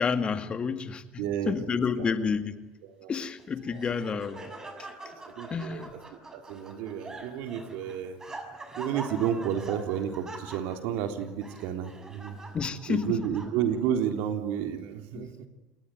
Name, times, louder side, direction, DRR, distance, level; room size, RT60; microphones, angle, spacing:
voice 1, 0.0-1.1 1.5-2.7 3.1-4.5 5.5-5.9 12.5-13.2 15.1-15.3, left 5 dB, 30° left, 9 dB, 2.2 m, -29 dB
voice 2, 1.2-2.1 2.8-3.1 3.7-3.8 5.0-6.0 6.3-8.2 8.8-12.4 12.9-15.5, right 9 dB, 70° right, 6 dB, 3.7 m, -31 dB
Laughter, 3.4-13.9, right 2 dB, 20° right, 6.4 m, -44 dB
28.0 x 22.0 x 9.3 m, 1.1 s
supercardioid pair, 95°, 3 cm